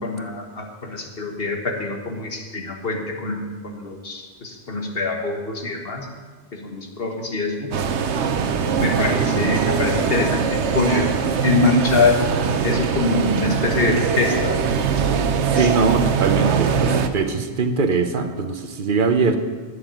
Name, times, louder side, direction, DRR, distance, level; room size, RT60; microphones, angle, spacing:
voice 1, 0.0-6.1 6.5-7.7 8.8-11.2 11.4-12.2 12.6-14.6 15.6-15.7, left 3 dB, 55° left, 3 dB, 1.7 m, -24 dB
sound 1, 7.7-17.1, right 6 dB, 80° right, 1.1 m, -22 dB
voice 2, 15.5-19.4, right 4 dB, 50° right, 8 dB, 1.0 m, -21 dB
11.0 x 6.8 x 9.1 m, 1.5 s
omnidirectional pair, 1.2 m